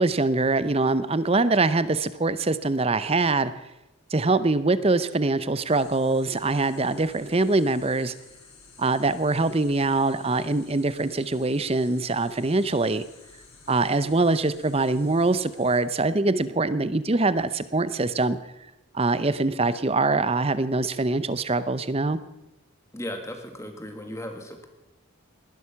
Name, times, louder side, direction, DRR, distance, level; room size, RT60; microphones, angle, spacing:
voice 1, 0.0-3.5 4.1-8.1 8.8-13.0 13.7-18.4 18.9-22.2, right 3 dB, 25° right, 14 dB, 0.6 m, -23 dB
sound 1, 5.7-15.8, left 4 dB, 80° left, 5.0 m, -52 dB
voice 2, 22.9-24.7, equal, 15° left, 5 dB, 1.8 m, -36 dB
19.5 x 11.5 x 5.8 m, 0.97 s
head